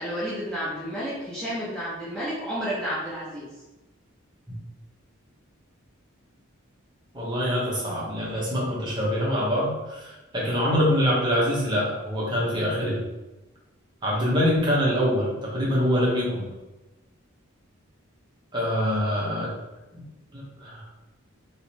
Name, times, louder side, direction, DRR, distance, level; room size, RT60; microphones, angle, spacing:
voice 1, 0.0-3.5, equal, 5° left, -9 dB, 0.6 m, -31 dB
voice 2, 7.1-13.0 14.0-16.5 18.5-19.5 20.0-20.1 20.3-20.8, equal, 20° right, -5 dB, 0.9 m, -25 dB
3.6 x 3.0 x 2.9 m, 1.1 s
head